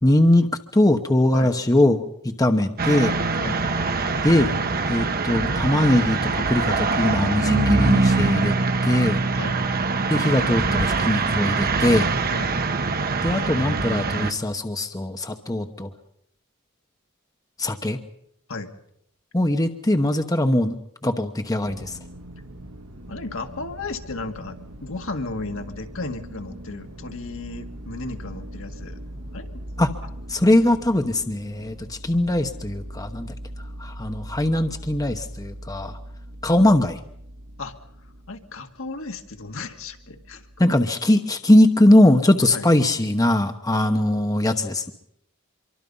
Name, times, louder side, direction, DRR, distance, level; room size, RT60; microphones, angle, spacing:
voice 1, 0.0-3.1 4.2-4.5 4.9-8.6 8.8-9.2 10.1-12.1 13.2-15.9 17.6-18.0 19.3-20.8 21.0-22.0 29.8-29.9 30.3-33.3 33.8-36.0 36.4-37.0 40.6-44.9, left 1 dB, 15° left, 6 dB, 1.0 m, -20 dB
sound 1, 2.8-14.3, right 3 dB, 45° right, 1.2 m, -23 dB
sound 2, 21.6-40.7, right 1 dB, 70° right, 1.9 m, -40 dB
voice 2, 23.1-29.0 29.3-29.5 37.6-37.8 38.3-40.5 42.5-42.7, left 3 dB, 65° left, 5 dB, 1.9 m, -34 dB
25.0 x 24.0 x 5.5 m, 0.71 s
head